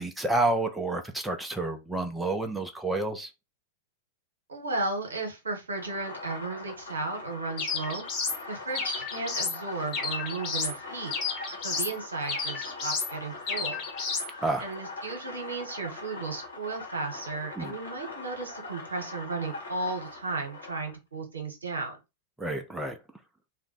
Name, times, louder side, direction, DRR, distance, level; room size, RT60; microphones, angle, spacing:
voice 1, 0.0-3.3 14.4-14.7 17.6-17.7 22.4-23.0, right 2 dB, 5° right, 0.4 m, -29 dB
voice 2, 4.5-8.0 8.5-11.1 11.6-13.8 14.6-22.0, right 3 dB, 75° right, 0.9 m, -34 dB
sound 1, 5.7-20.9, left 3 dB, 75° left, 1.0 m, -42 dB
sound 2, 7.6-8.4 8.7-9.6 9.9-10.8 11.1-11.9 12.3-13.1 13.5-14.3, left 5 dB, 40° left, 0.9 m, -32 dB
2.5 x 2.1 x 3.8 m
figure-of-eight pair, 95°, 0 cm